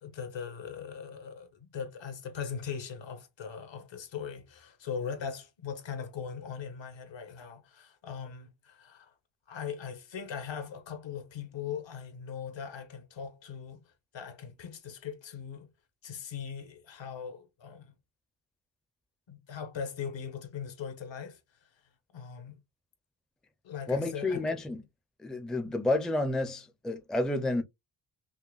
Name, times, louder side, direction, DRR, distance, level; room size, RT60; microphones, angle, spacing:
voice 1, 0.0-9.1 9.5-13.8 14.1-15.7 16.0-17.9 19.3-21.4 22.1-22.6 23.6-24.4, left 7 dB, 70° left, 1.2 m, -40 dB
voice 2, 23.9-24.8 25.2-27.6, left 2 dB, ahead, 0.4 m, -30 dB
5.6 x 2.1 x 2.3 m
wide cardioid pair, 145°, 46 cm